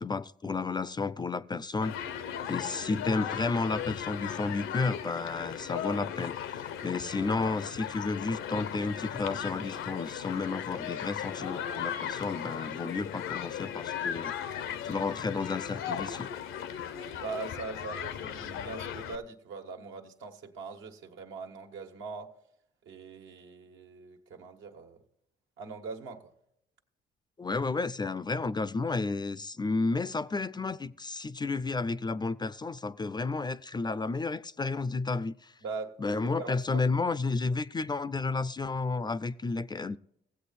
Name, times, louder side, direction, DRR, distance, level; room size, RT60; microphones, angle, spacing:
voice 1, 0.0-2.0 2.5-14.3 14.8-16.3 27.4-35.5 36.0-40.0, left 3 dB, 20° left, 0.4 m, -32 dB
Human group actions, 1.8-19.2, left 9 dB, 85° left, 0.8 m, -37 dB
voice 2, 9.3-9.6 17.2-22.3 22.8-25.0 25.6-26.3 35.6-35.9 36.4-36.8, right 4 dB, 80° right, 1.5 m, -41 dB
16.5 x 7.9 x 4.2 m
cardioid pair, 90°, 20 cm